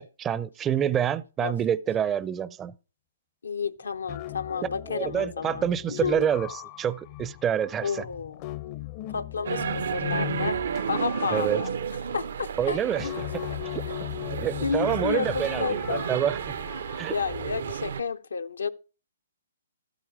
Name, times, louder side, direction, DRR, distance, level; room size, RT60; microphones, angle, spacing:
voice 1, 0.0-2.7 4.9-8.0 11.3-11.6 12.6-13.2 13.7-13.8 14.3-16.6 16.9-17.1, right 9 dB, 20° right, 0.5 m, -27 dB
voice 2, 3.4-6.3 7.8-8.4 9.1-10.6 10.9-11.7 12.1-13.2 14.6-16.1 17.1-18.7, left 5 dB, 85° left, 0.7 m, -31 dB
sound 1, 3.8-17.7, left 16 dB, 35° left, 0.5 m, -39 dB
sound 2, 9.5-18.0, right 7 dB, 65° right, 0.5 m, -32 dB
13.0 x 9.1 x 4.9 m
hypercardioid pair, 135°, 0 cm